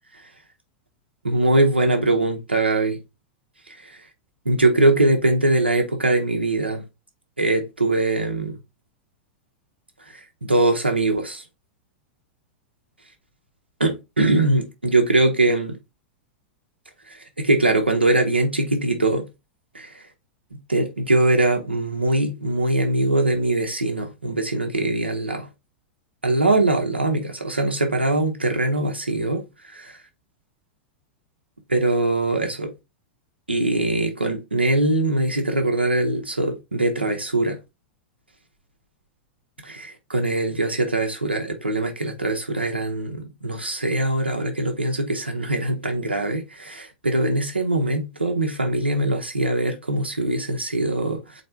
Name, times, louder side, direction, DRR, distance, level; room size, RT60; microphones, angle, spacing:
voice 1, 1.2-3.0 3.7-4.0 4.4-6.8 7.4-8.6 10.1-11.4 13.8-15.8 17.1-19.3 19.7-20.1 20.7-25.5 26.2-30.0 31.7-32.7 33.5-37.6 39.6-51.4, right 2 dB, 85° right, 0.8 m, -22 dB
4.3 x 2.9 x 4.2 m
figure-of-eight pair, 95°, 6 cm